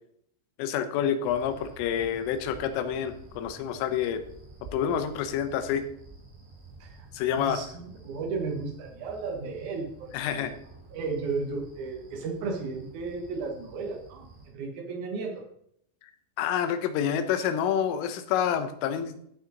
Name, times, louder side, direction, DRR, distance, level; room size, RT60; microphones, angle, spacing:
voice 1, 0.6-4.2 4.7-5.8 7.1-7.6 10.1-10.5 16.4-19.2, left 8 dB, 80° left, 9 dB, 3.4 m, -28 dB
sound 1, 1.2-14.5, right 3 dB, 70° right, 6.4 m, -50 dB
voice 2, 7.3-10.5 10.9-15.4, right 4 dB, 90° right, 2 dB, 1.7 m, -34 dB
15.5 x 5.6 x 3.9 m, 0.70 s
omnidirectional pair, 5.7 m